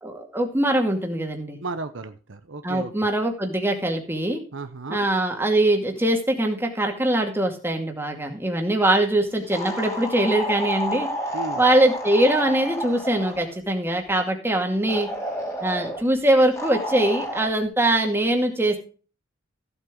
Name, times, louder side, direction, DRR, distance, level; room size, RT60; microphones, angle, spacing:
voice 1, 0.0-1.6 2.6-4.4 4.9-11.1 11.6-15.1 15.6-18.8, right 1 dB, 10° right, 2 dB, 2.2 m, -22 dB
voice 2, 1.6-3.1 4.5-5.1 11.3-11.6, right 3 dB, 65° right, 9 dB, 0.8 m, -34 dB
sound 1, 9.5-13.5 14.9-16.0 16.6-17.5, equal, 15° left, 2.6 m, -30 dB
15.0 x 8.2 x 3.9 m, 0.37 s
head